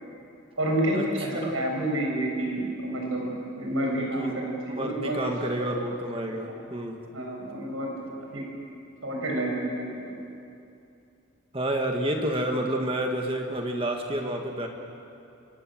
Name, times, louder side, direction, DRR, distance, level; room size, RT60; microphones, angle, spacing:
voice 1, 0.6-5.2 5.6-5.7 7.1-8.4 9.0-10.0, right 1 dB, 80° right, -1 dB, 7.6 m, -29 dB
voice 2, 4.2-4.5 4.8-7.1 11.5-14.7, right 1 dB, 25° right, 2 dB, 1.9 m, -29 dB
26.5 x 25.5 x 7.7 m, 2.6 s
head